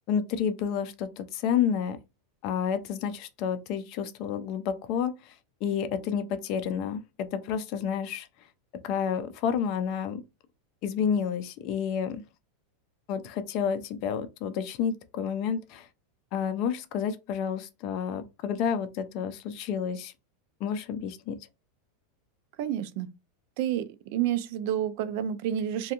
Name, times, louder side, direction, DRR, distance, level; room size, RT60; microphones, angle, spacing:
voice 1, 0.1-2.0 2.4-5.3 5.6-7.0 7.3-8.3 8.8-10.2 10.8-12.2 13.1-15.9 16.3-20.1 20.6-21.4, left 7 dB, 45° left, 0.4 m, -30 dB
voice 2, 22.6-23.1 23.6-25.9, right 10 dB, 55° right, 0.4 m, -29 dB
2.5 x 2.2 x 2.9 m
supercardioid pair, 145°, 0 cm